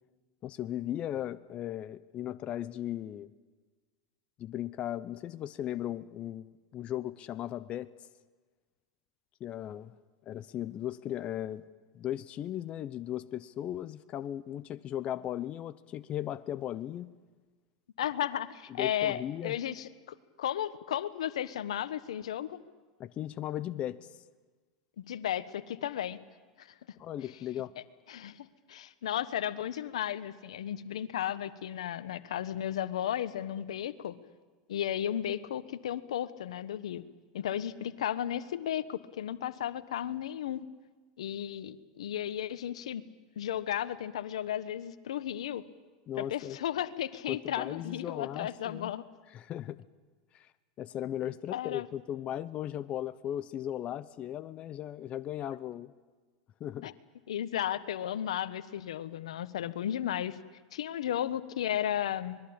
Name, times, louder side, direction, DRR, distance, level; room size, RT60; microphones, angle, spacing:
voice 1, 0.4-3.3 4.4-7.9 9.4-9.9 10.3-11.6 11.9-17.1 18.7-19.6 23.0-24.2 27.0-27.7 46.1-46.6 47.3-48.9 49.3-49.8 50.3-50.5 50.8-55.9 56.6-56.9, left 11 dB, 40° left, 14 dB, 0.8 m, -37 dB
voice 2, 18.0-22.6 25.0-26.2 26.6-26.7 28.1-34.1 34.7-37.0 37.3-40.7 41.2-43.0 43.4-45.6 46.2-49.0 51.5-51.9 56.8-56.9 57.3-60.4 60.7-62.4, left 10 dB, 85° left, 14 dB, 1.2 m, -34 dB
25.5 x 21.0 x 8.8 m, 1.4 s
hypercardioid pair, 110°, 3 cm